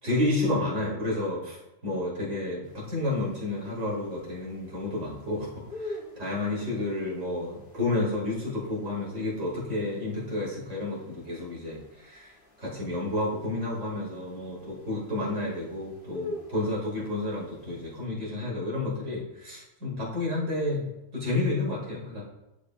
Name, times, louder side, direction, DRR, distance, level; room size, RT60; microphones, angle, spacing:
voice 1, 0.0-5.5 5.8-12.3 12.6-22.3, left 2 dB, 80° right, -5 dB, 3.0 m, -30 dB
sound 1, 2.6-18.1, left 1 dB, 45° left, 1.4 m, -47 dB
11.5 x 5.0 x 2.5 m, 0.94 s
omnidirectional pair, 1.3 m